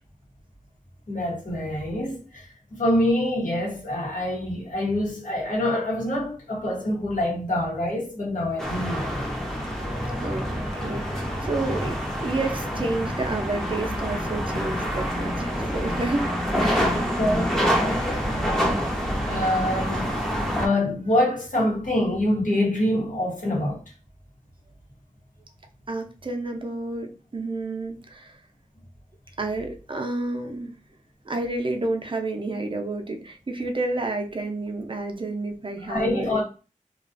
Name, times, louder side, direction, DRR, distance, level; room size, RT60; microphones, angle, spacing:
voice 1, 1.1-9.1 17.2-18.1 19.3-20.1 20.6-23.8 35.9-36.4, left 1 dB, 75° left, 0.9 m, -25 dB
sound 1, 8.6-20.7, equal, 5° left, 0.6 m, -27 dB
voice 2, 10.2-17.0 18.3-18.7 25.9-28.4 29.4-30.7 31.3-36.4, right 2 dB, 40° right, 0.5 m, -30 dB
2.4 x 2.3 x 2.4 m
wide cardioid pair, 70°, 14 cm